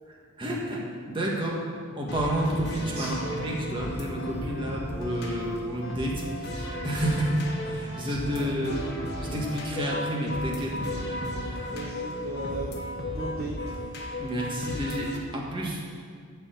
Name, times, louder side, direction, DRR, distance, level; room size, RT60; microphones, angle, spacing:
voice 1, 0.1-1.7 2.0-8.9 9.2-10.8 14.2-15.8, right 1 dB, 20° right, -3 dB, 1.7 m, -30 dB
sound 1, 2.1-15.2, left 1 dB, 50° left, 1.3 m, -35 dB
voice 2, 8.4-8.9 11.7-13.6, right 2 dB, 45° right, -2 dB, 1.0 m, -37 dB
12.5 x 4.7 x 7.9 m, 2.1 s
head